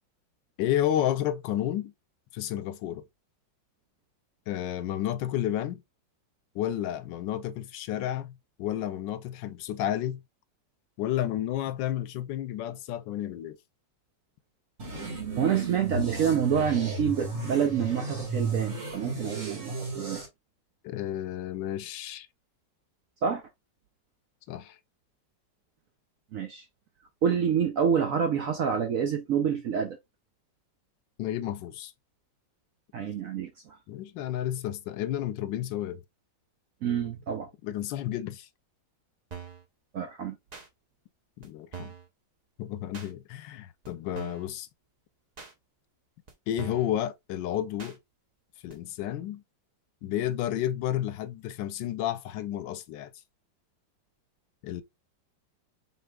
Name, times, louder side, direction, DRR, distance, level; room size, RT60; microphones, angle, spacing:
voice 1, 0.6-1.9 2.3-3.0 4.5-5.8 6.5-10.2 11.0-13.6 20.8-22.3 24.5-24.8 31.2-31.9 33.9-36.0 37.6-38.5 41.4-41.9 42.6-44.7 46.5-48.0 48.6-49.4 50.0-53.1 54.6-54.8, left 11 dB, 90° left, 1.3 m, -31 dB
sound 1, 14.8-20.3, right 2 dB, 45° right, 2.3 m, -34 dB
voice 2, 15.4-20.2 23.2-23.4 26.3-26.6 27.2-30.0 32.9-33.8 36.8-37.5 39.9-40.4, right 7 dB, 65° right, 0.9 m, -27 dB
sound 2, 39.3-39.6 40.5-40.7 41.4-41.5 41.7-42.1 42.9-43.1 43.8-43.9 44.1-44.5 45.4-45.5 46.3-46.4 46.6-46.9 47.8-48.0 48.7-48.8, right 6 dB, 80° right, 0.3 m, -42 dB
5.4 x 3.8 x 2.3 m
omnidirectional pair, 1.9 m